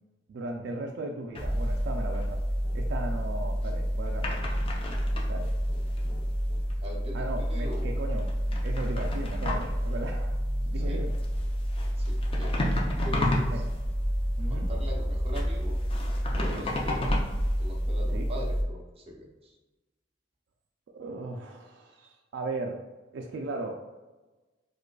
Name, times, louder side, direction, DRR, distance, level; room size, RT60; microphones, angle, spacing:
voice 1, 0.3-2.4 2.7-4.4 5.3-5.5 7.1-10.4 10.7-11.1 13.5-13.6 14.4-14.7 16.5-16.7 18.1-18.3 20.9-22.8 23.1-23.8, right 2 dB, 70° right, 1 dB, 0.3 m, -37 dB
sound 1, 1.4-18.6, equal, 30° left, 0.5 m, -29 dB
voice 2, 6.8-8.0 10.7-11.0 11.9-12.5 13.0-13.7 14.5-15.8 16.3-17.2 17.6-19.6, equal, 30° right, -1 dB, 0.6 m, -41 dB
4.8 x 2.3 x 2.2 m, 1.2 s
head